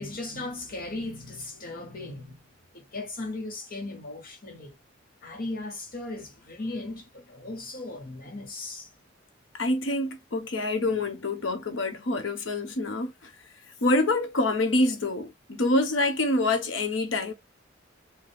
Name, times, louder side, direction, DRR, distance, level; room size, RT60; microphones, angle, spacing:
voice 1, 0.0-2.4 2.7-4.7 5.2-8.9, left 2 dB, 50° left, 0.9 m, -37 dB
voice 2, 9.5-13.3 13.8-17.3, left 2 dB, 75° left, 0.9 m, -26 dB
4.1 x 2.3 x 3.4 m
head